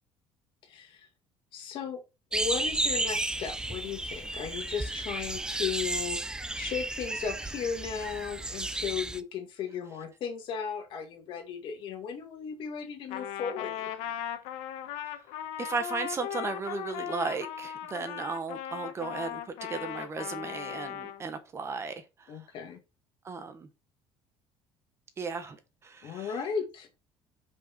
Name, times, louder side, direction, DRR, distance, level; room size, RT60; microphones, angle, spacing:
voice 1, 0.6-1.1 1.5-2.0 2.3-14.1 22.3-22.8 26.0-27.0, left 7 dB, 55° left, 2.1 m, -36 dB
sound 1, 2.3-9.2, right 2 dB, 5° right, 0.4 m, -33 dB
Trumpet, 13.1-21.2, left 10 dB, 85° left, 1.1 m, -38 dB
voice 2, 15.6-22.4 23.2-23.7 25.2-26.4, right 4 dB, 25° right, 1.1 m, -35 dB
5.6 x 4.9 x 5.8 m
cardioid pair, 145°, 10 cm